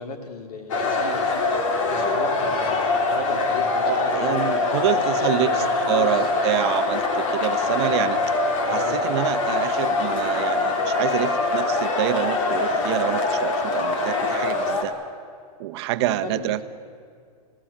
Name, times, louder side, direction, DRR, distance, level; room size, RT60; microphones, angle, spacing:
voice 1, 0.0-1.4 1.9-6.3 7.9-8.2 8.7-9.0 15.9-16.6, left 3 dB, 90° left, 5 dB, 3.3 m, -36 dB
sound 1, 0.7-14.8, left 3 dB, 55° left, 3.5 m, -23 dB
voice 2, 3.8-8.2 8.7-14.9 15.6-16.6, right 14 dB, 45° right, 10 dB, 1.0 m, -27 dB
28.5 x 17.0 x 8.7 m, 2.2 s
supercardioid pair, 160°, 19 cm